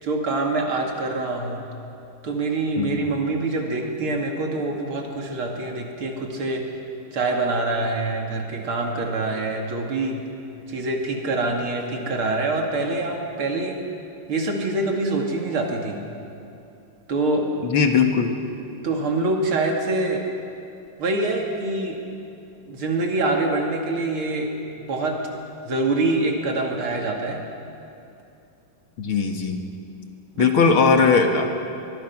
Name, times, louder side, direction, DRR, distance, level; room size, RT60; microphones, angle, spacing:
voice 1, 0.0-1.6 2.2-6.6 7.1-10.2 10.7-13.8 14.3-16.0 17.1-17.5 18.8-20.2 21.0-22.0 22.6-24.5 24.8-25.2 25.7-27.4 30.3-30.5, right 2 dB, 75° right, 1 dB, 3.3 m, -25 dB
voice 2, 17.6-18.3 29.0-29.6 30.4-31.5, left 5 dB, 70° left, 4 dB, 2.5 m, -19 dB
23.5 x 22.5 x 6.0 m, 2.8 s
omnidirectional pair, 2.4 m